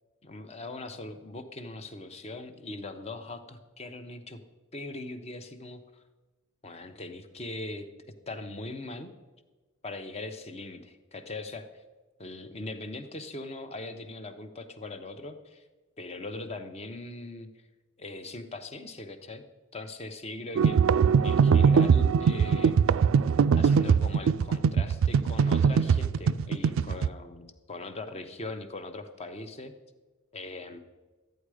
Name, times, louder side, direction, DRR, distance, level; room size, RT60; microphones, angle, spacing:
voice 1, 0.2-4.4 4.7-6.0 6.6-7.9 8.3-9.1 9.8-11.8 12.2-15.6 16.0-17.5 18.0-19.4 19.7-20.8 21.2-22.8 23.6-29.7 30.3-30.8, left 2 dB, 30° left, 8 dB, 0.8 m, -40 dB
sound 1, 20.6-27.1, right 6 dB, 70° right, 0.3 m, -22 dB
13.0 x 9.2 x 4.9 m, 1.2 s
head